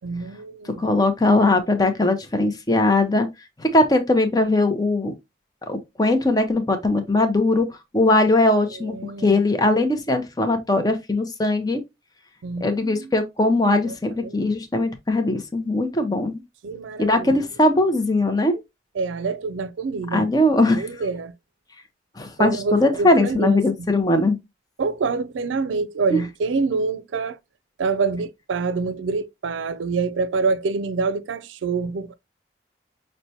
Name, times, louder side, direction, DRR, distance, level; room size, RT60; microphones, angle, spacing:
voice 1, 0.0-0.8 8.7-9.4 12.4-13.1 13.8-14.3 16.6-17.4 19.0-20.3 20.7-21.3 22.4-23.9 24.8-27.4 27.8-32.1, right 4 dB, 85° right, 0.4 m, -26 dB
voice 2, 0.8-3.3 3.6-5.1 5.7-7.7 7.9-8.9 9.2-11.8 12.6-16.4 17.0-18.6 20.1-20.9 22.2-24.4 26.1-26.2, left 2 dB, 20° left, 0.6 m, -20 dB
5.6 x 2.1 x 2.7 m
head